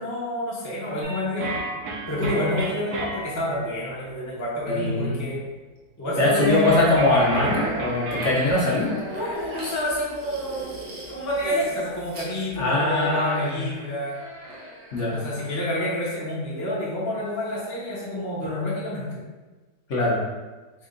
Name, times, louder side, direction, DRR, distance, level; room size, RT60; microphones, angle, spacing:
voice 1, 0.0-1.5 2.1-5.4 6.0-6.8 9.1-10.7 11.1-14.2 15.1-19.2, left 1 dB, 15° left, -6 dB, 0.7 m, -28 dB
sound 1, 1.0-3.8 6.6-8.5, right 2 dB, 75° right, 1.3 m, -32 dB
voice 2, 4.7-5.3 6.2-9.0 12.6-13.7 14.9-15.2 19.9-20.2, left 2 dB, 55° left, -5 dB, 1.0 m, -22 dB
sound 2, 6.3-15.5, equal, 55° right, 1.0 m, -37 dB
4.3 x 2.4 x 3.8 m, 1.3 s
omnidirectional pair, 1.6 m